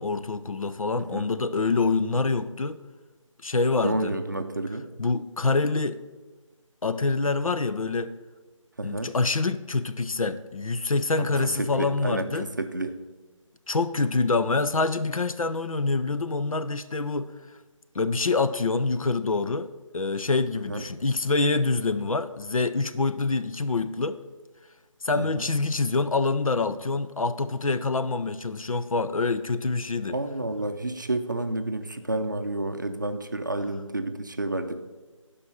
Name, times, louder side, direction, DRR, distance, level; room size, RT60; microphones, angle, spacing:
voice 1, 0.0-2.8 3.4-4.1 5.0-6.0 6.8-8.1 8.8-12.5 13.7-17.3 17.9-19.7 19.9-24.2 25.0-30.2, left 3 dB, 85° left, 0.7 m, -26 dB
voice 2, 1.0-1.3 3.8-4.9 8.8-9.1 11.2-13.0 20.7-20.9 25.1-25.5 30.1-34.8, right 2 dB, 35° right, 0.5 m, -30 dB
11.0 x 5.4 x 5.5 m
figure-of-eight pair, 175°, 17 cm